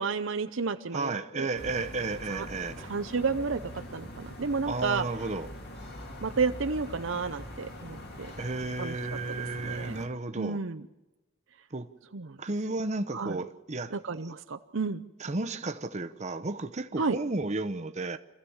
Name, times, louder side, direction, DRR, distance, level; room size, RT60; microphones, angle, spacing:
voice 1, 0.0-1.5 2.3-2.5 2.9-3.6 3.9-5.0 6.2-8.3 8.8-8.9 9.4-10.0 10.4-10.8 12.1-12.3 13.1-13.4 13.9-15.0 17.0-17.2, right 4 dB, 60° right, 0.7 m, -31 dB
voice 2, 0.9-2.9 4.7-5.5 8.4-10.6 11.7-11.9 12.4-13.9 15.2-18.2, right 3 dB, 35° right, 0.9 m, -33 dB
sound 1, 1.5-10.0, left 1 dB, 50° left, 2.4 m, -43 dB
27.0 x 14.5 x 7.2 m
head